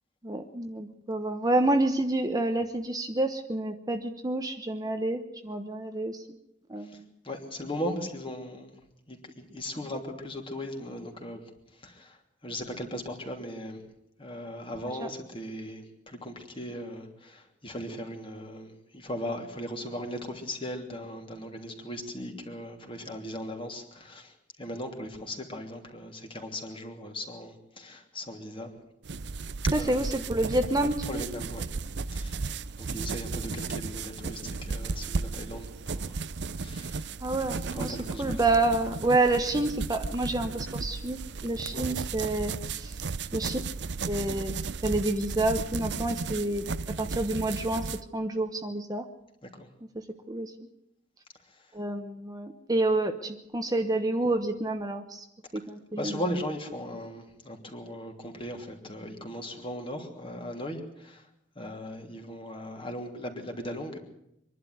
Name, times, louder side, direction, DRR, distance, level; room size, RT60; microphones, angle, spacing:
voice 1, 0.2-6.2 6.7-7.1 15.0-15.1 29.7-31.2 37.2-43.0 43.3-43.6 44.0-44.6 44.8-46.6 47.0-47.8 48.1-49.0 50.3-50.5 51.7-55.2 55.5-56.2, right 2 dB, 20° right, 6 dB, 1.1 m, -28 dB
voice 2, 7.2-8.7 9.1-11.4 11.8-13.8 14.2-28.7 29.7-30.1 31.1-31.6 32.1-32.4 32.8-36.2 36.6-37.1 37.7-38.4 41.7-41.9 49.4-49.7 55.9-61.3 61.5-64.0, equal, 30° left, 3 dB, 3.0 m, -38 dB
sound 1, 29.1-48.0, right 4 dB, 70° right, 0.7 m, -34 dB
24.0 x 11.5 x 9.4 m, 0.79 s
head